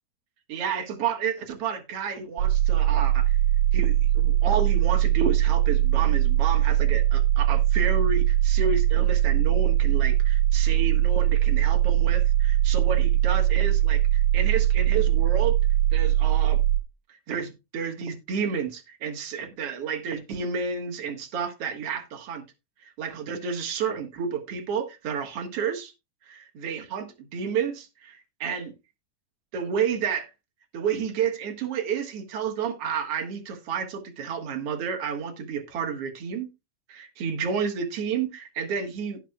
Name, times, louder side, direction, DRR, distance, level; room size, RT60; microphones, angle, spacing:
voice 1, 0.5-3.4 3.7-15.6 15.9-16.6 17.1-22.4 22.8-25.9 26.3-28.7 29.5-30.3 30.7-36.5 36.9-39.2, right 6 dB, 55° right, 2.1 m, -31 dB
sound 1, 2.4-16.8, right 13 dB, 75° right, 2.2 m, -21 dB
17.0 x 5.9 x 2.3 m
omnidirectional pair, 4.0 m